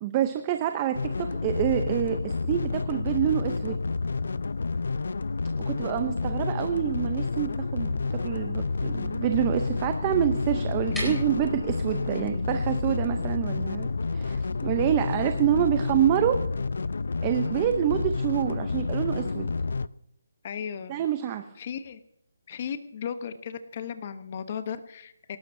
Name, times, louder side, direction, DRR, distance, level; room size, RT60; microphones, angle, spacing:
voice 1, 0.0-3.8 5.6-16.4 17.2-19.5 20.9-21.5, right 11 dB, 20° right, 8 dB, 0.6 m, -27 dB
sound 1, 0.9-19.9, left 4 dB, 70° left, 0.5 m, -29 dB
sound 2, 10.7-16.6, equal, ahead, 4.1 m, -43 dB
voice 2, 10.9-11.2 12.1-12.4 20.4-21.0 21.6-22.0 22.5-25.4, left 7 dB, 35° left, 10 dB, 0.8 m, -36 dB
25.0 x 12.5 x 2.7 m, 0.79 s
hypercardioid pair, 170°, 0 cm